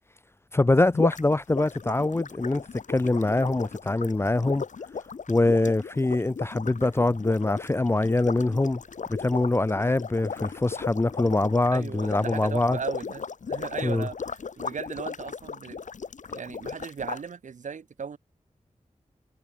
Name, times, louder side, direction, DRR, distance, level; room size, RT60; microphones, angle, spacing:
voice 1, 0.5-4.6 5.3-8.8 9.2-12.8 13.8-14.1, left 2 dB, 20° left, 0.4 m, -24 dB
sound 1, 0.9-17.2, left 5 dB, 75° left, 1.3 m, -37 dB
voice 2, 11.7-13.2 13.5-14.2 14.6-15.8 16.3-18.2, right 6 dB, 75° right, 0.8 m, -36 dB
wide cardioid pair, 85°, 13 cm